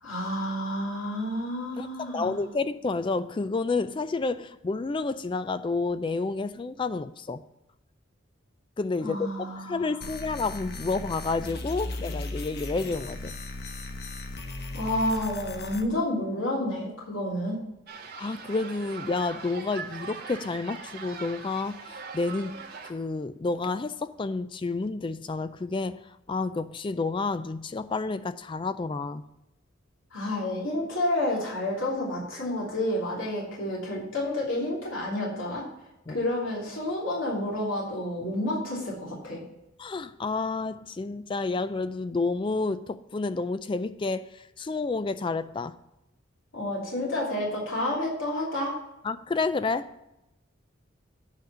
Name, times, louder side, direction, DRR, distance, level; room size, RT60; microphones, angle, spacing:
voice 1, 0.0-2.4 9.0-10.0 14.7-17.6 30.1-35.7 36.1-39.4 46.5-48.8, left 1 dB, 75° left, 3.0 m, -30 dB
voice 2, 1.8-7.4 8.8-13.3 18.2-21.8 22.1-22.6 22.9-26.0 26.3-29.2 36.1-36.2 39.8-45.8 49.0-49.9, left 3 dB, 25° left, 0.3 m, -30 dB
sound 1, 10.0-15.8, left 2 dB, 50° left, 1.0 m, -37 dB
sound 2, 17.9-22.9, right 5 dB, 50° right, 1.7 m, -41 dB
9.3 x 5.2 x 6.8 m
head